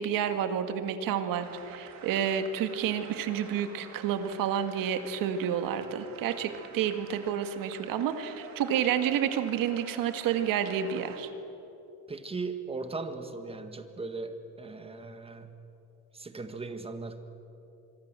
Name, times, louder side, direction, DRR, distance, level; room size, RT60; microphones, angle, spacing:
voice 1, 0.0-11.3, right 9 dB, 70° right, 9 dB, 1.9 m, -30 dB
sound 1, 1.4-11.2, right 6 dB, 55° right, 3.0 m, -48 dB
voice 2, 12.1-15.5 16.1-17.2, right 3 dB, 15° right, 8 dB, 1.7 m, -38 dB
25.5 x 23.5 x 7.6 m, 3.0 s
cardioid pair, 135°, 34 cm